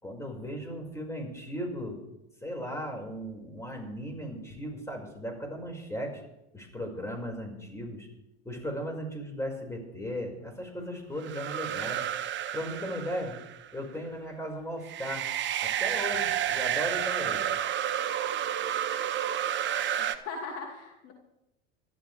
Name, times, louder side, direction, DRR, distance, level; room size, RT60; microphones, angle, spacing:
voice 1, 0.0-2.0 2.4-6.2 6.5-8.1 8.4-12.0 12.5-13.3 13.7-15.3 15.6-17.5, equal, 10° left, 1 dB, 5.4 m, -36 dB
sound 1, 11.2-13.7 14.8-20.2, right 10 dB, 35° right, 1.0 m, -30 dB
voice 2, 20.0-21.1, left 4 dB, 45° left, 1 dB, 2.5 m, -39 dB
26.5 x 12.5 x 3.4 m, 0.88 s
hypercardioid pair, 95°, 33 cm